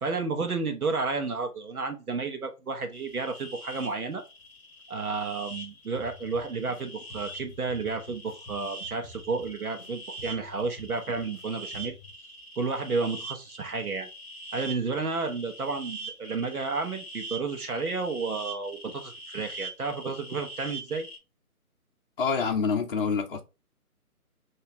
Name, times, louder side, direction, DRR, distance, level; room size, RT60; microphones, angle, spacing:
voice 1, 0.0-4.2 4.9-12.0 12.6-14.1 14.5-21.1, right 4 dB, 70° right, 1.1 m, -31 dB
sound 1, 2.9-21.2, right 2 dB, 20° left, 1.0 m, -43 dB
sound 2, 5.9-6.8 7.1-9.9 10.2-11.4 11.7-12.1, left 1 dB, 10° right, 2.2 m, -49 dB
voice 2, 22.2-23.4, left 5 dB, 40° left, 0.6 m, -26 dB
5.4 x 2.8 x 2.9 m
figure-of-eight pair, 150°, 45 cm